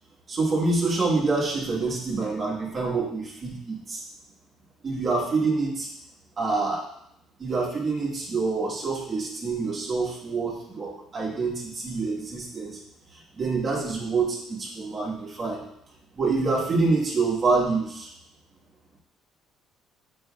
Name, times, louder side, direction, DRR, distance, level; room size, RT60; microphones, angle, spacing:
voice 1, 0.3-4.0 4.8-5.9 6.4-6.9 7.4-12.8 13.1-15.6 16.1-18.1, right 3 dB, 35° right, -4 dB, 1.4 m, -26 dB
7.6 x 5.4 x 2.4 m, 0.74 s
cardioid pair, 130°, 0 cm